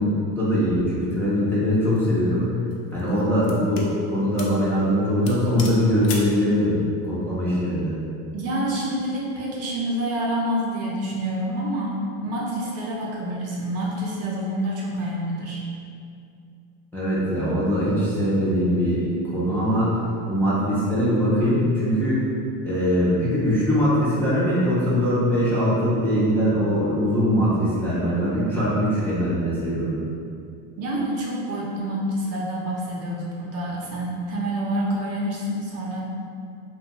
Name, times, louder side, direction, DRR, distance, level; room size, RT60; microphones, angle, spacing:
voice 1, 0.0-2.5 2.9-6.8 7.1-8.0 16.9-20.0 20.3-22.2 22.6-29.9, equal, 5° left, -10 dB, 0.4 m, -22 dB
sound 1, 1.7-2.0 2.7-3.9 4.4-4.6 4.9-5.0 5.3-6.4, left 3 dB, 60° left, 0.5 m, -37 dB
voice 2, 8.3-12.0 12.2-15.6 30.8-36.0, right 1 dB, 40° right, -4 dB, 0.6 m, -27 dB
2.6 x 2.2 x 2.9 m, 2.5 s
supercardioid pair, 120°, 37 cm